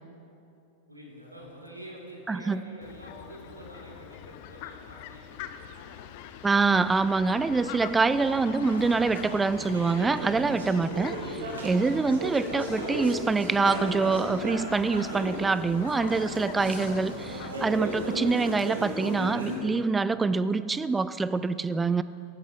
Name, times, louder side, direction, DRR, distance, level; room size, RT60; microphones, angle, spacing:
voice 1, 0.9-6.0 10.7-11.1, equal, 85° right, -2 dB, 4.1 m, -47 dB
Train, 1.2-2.5 2.9-3.9 4.4-13.2 13.4-13.5, left 6 dB, 65° left, 1.1 m, -49 dB
voice 2, 2.3-2.6 6.4-22.0, right 4 dB, 10° right, 15 dB, 0.6 m, -25 dB
Fowl, 2.8-18.3, left 10 dB, 45° left, 0.9 m, -44 dB
sound 1, 8.6-19.6, right 1 dB, 65° right, 3.8 m, -36 dB
18.5 x 15.0 x 5.2 m, 2.7 s
figure-of-eight pair, 90°, 0 cm